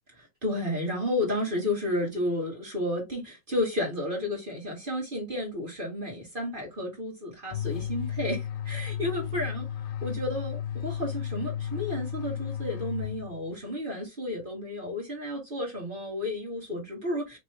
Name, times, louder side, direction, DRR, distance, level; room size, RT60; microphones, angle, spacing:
voice 1, 0.2-9.6 10.0-17.4, left 1 dB, 40° right, 0.7 m, -32 dB
sound 1, 7.5-13.6, left 9 dB, 90° left, 2.2 m, -34 dB
5.1 x 3.2 x 3.2 m
omnidirectional pair, 3.8 m